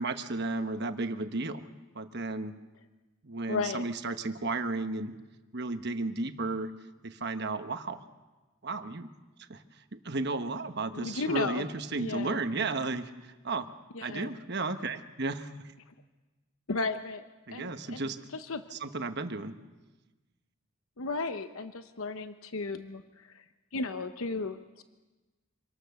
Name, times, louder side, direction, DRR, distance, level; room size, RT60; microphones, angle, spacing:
voice 1, 0.0-1.6 1.9-2.5 3.2-5.1 5.5-6.7 7.0-8.0 8.6-9.1 9.5-9.6 9.9-13.7 14.0-15.7 17.5-18.2 18.7-19.6, right 3 dB, 50° right, 8 dB, 1.1 m, -33 dB
voice 2, 3.5-3.8 10.9-11.7 12.0-12.4 13.9-14.3 16.7-17.2 17.5-18.6 21.0-23.4 23.7-24.8, left 3 dB, 75° left, 9 dB, 0.8 m, -34 dB
26.0 x 18.5 x 7.0 m, 1.2 s
head